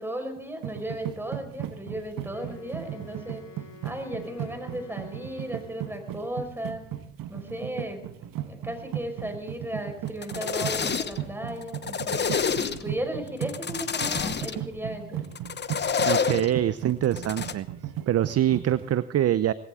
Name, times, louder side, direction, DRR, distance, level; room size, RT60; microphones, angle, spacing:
voice 1, 0.0-3.4 3.8-6.8 7.3-15.3, equal, 5° right, 5 dB, 5.1 m, -35 dB
sound 1, 0.6-19.0, right 12 dB, 50° right, 1.4 m, -36 dB
Wind instrument woodwind instrument, 2.3-6.4, left 4 dB, 40° left, 2.7 m, -49 dB
sound 2, 10.1-11.3 11.6-13.0 13.4-14.6 15.4-16.5 17.0-17.5, left 6 dB, 25° left, 1.0 m, -28 dB
voice 2, 16.0-17.7 18.1-19.5, right 12 dB, 35° right, 16 dB, 0.7 m, -24 dB
19.5 x 17.0 x 3.7 m, 0.70 s
hypercardioid pair, 75°, 43 cm